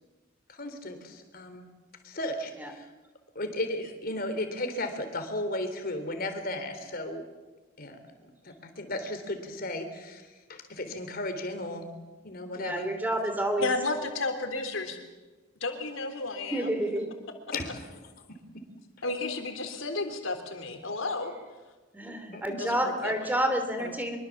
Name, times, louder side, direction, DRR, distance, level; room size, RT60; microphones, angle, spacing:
voice 1, 0.5-1.6 2.0-2.9 3.4-7.2 7.8-8.0 8.4-11.9 12.2-12.9 17.5-17.8 22.3-22.6 23.8-23.9, left 1 dB, 50° left, 7 dB, 3.6 m, -35 dB
voice 2, 12.5-13.7 16.5-17.1 21.9-24.2, right 1 dB, 10° right, 6 dB, 2.9 m, -29 dB
voice 3, 13.6-15.0 15.6-16.7 19.0-21.3 22.6-23.4, left 3 dB, 85° left, 5 dB, 3.6 m, -32 dB
25.0 x 23.5 x 7.4 m, 1.2 s
head